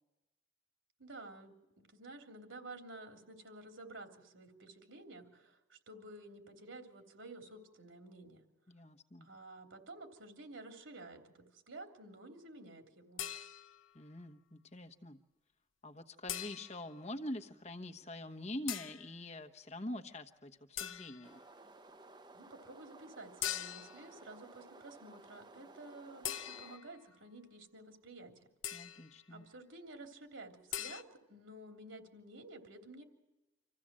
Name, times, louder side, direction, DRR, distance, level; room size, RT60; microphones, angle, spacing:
voice 1, 1.0-1.5 1.9-8.4 9.2-11.2 11.5-13.2 22.3-28.5 29.3-31.0 31.3-33.0, right 2 dB, 85° right, 3 dB, 3.3 m, -52 dB
voice 2, 8.7-9.3 13.9-15.2 15.8-21.4 28.7-29.4, left 1 dB, 35° left, 7 dB, 1.1 m, -45 dB
sound 1, 13.2-13.9 16.3-16.9 18.7-19.1 20.8-21.3 23.4-24.1 26.2-27.0 28.6-29.1 30.7-31.0, left 11 dB, 80° left, 0.8 m, -41 dB
sound 2, 21.2-26.8, right 2 dB, 20° right, 0.7 m, -57 dB
26.5 x 15.5 x 7.6 m, 1.0 s
head